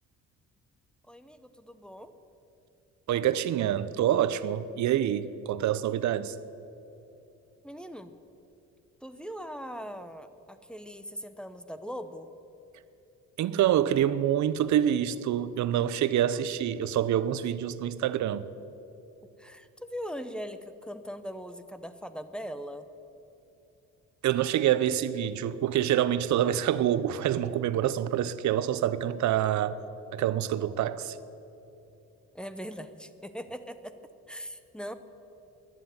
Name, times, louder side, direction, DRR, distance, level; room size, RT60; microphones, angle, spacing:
voice 1, 1.1-2.1 7.6-8.1 9.0-12.3 19.4-22.9 32.3-33.9 34.3-34.9, equal, 5° left, 9 dB, 0.8 m, -40 dB
voice 2, 3.1-6.4 13.4-18.5 24.2-29.8 30.1-31.2, right 11 dB, 70° right, 16 dB, 0.7 m, -26 dB
11.5 x 9.3 x 9.5 m, 2.9 s
cardioid pair, 90°, 30 cm